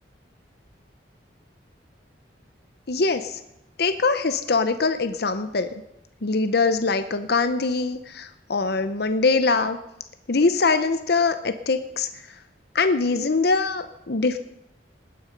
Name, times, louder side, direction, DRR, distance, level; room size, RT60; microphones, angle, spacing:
voice 1, 2.9-3.4 3.8-5.7 6.2-9.8 10.3-12.1 12.7-14.4, left 4 dB, 60° left, 9 dB, 0.8 m, -23 dB
19.0 x 9.7 x 5.3 m, 0.85 s
head